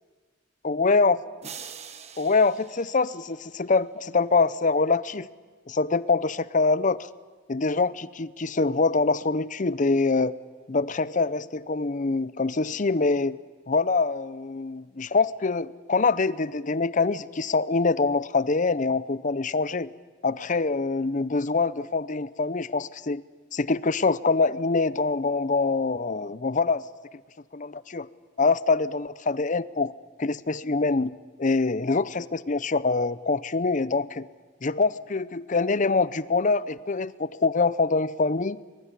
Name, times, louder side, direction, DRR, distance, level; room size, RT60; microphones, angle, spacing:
voice 1, 0.6-1.2 2.2-5.3 5.7-7.1 7.5-10.3 10.7-13.4 13.7-19.9 20.2-23.2 23.5-26.8 27.5-28.1 28.4-29.9 30.2-31.1 31.4-34.3 34.6-38.6, left 3 dB, 40° left, 17 dB, 0.7 m, -24 dB
sound 1, 1.4-3.8, right 7 dB, 35° right, 1.5 m, -44 dB
22.5 x 22.0 x 9.9 m, 1.4 s
head